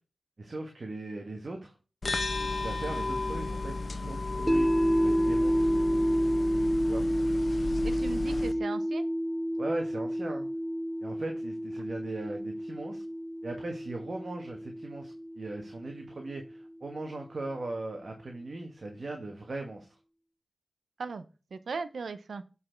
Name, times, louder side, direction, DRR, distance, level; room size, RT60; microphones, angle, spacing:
voice 1, 0.4-1.8 2.6-4.7 5.0-5.7 6.9-7.1 9.6-10.5 11.0-13.0 13.4-19.9, right 2 dB, 55° right, 3 dB, 1.3 m, -39 dB
sound 1, 2.0-8.5, left 3 dB, 55° left, 0.8 m, -33 dB
sound 2, 4.5-16.6, equal, 5° right, 0.5 m, -30 dB
voice 2, 7.8-9.0 21.0-21.2 21.5-22.4, right 4 dB, 80° right, 13 dB, 0.6 m, -37 dB
7.6 x 4.2 x 4.4 m, 0.32 s
cardioid pair, 50°, 0 cm